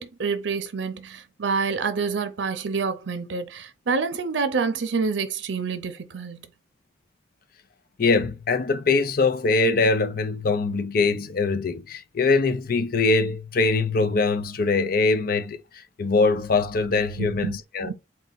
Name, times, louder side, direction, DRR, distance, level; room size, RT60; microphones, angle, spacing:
voice 1, 0.0-6.5 17.2-17.6 17.8-17.9, right 5 dB, 90° right, 0.6 m, -27 dB
voice 2, 8.0-17.9, left 3 dB, 55° left, 0.5 m, -23 dB
4.1 x 2.2 x 3.9 m
head